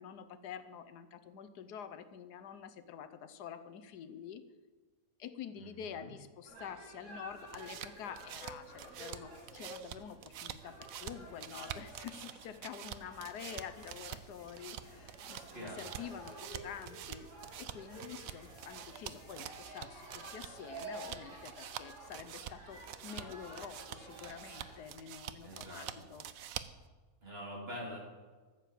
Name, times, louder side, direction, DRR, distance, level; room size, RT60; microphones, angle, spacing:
voice 1, 0.0-4.4 5.2-17.3 17.6-26.2, left 8 dB, 85° left, 11 dB, 1.4 m, -48 dB
voice 2, 5.6-6.1 15.5-15.9 25.4-25.9 27.2-28.0, equal, 40° right, -2 dB, 3.7 m, -45 dB
sound 1, 6.4-24.8, right 2 dB, 85° right, 6.1 m, -51 dB
sound 2, 7.3-26.9, right 10 dB, 65° right, 1.0 m, -47 dB
sound 3, 13.6-19.3, left 1 dB, 50° left, 3.5 m, -63 dB
14.0 x 7.7 x 7.5 m, 1.4 s
omnidirectional pair, 1.7 m